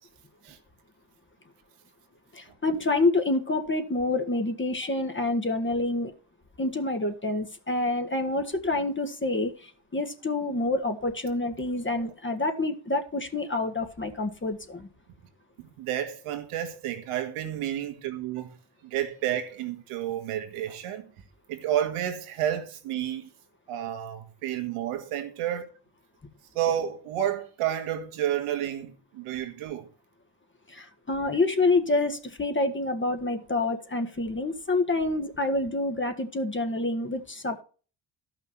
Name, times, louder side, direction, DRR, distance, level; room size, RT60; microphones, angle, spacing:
voice 1, 2.3-6.1 6.6-14.9 30.7-37.6, left 2 dB, 25° left, 1.7 m, -27 dB
voice 2, 15.6-18.6 18.8-21.1 21.5-23.3 23.7-25.6 26.6-29.9, right 11 dB, 85° right, 1.8 m, -31 dB
12.5 x 5.9 x 5.9 m
supercardioid pair, 70°, 50 cm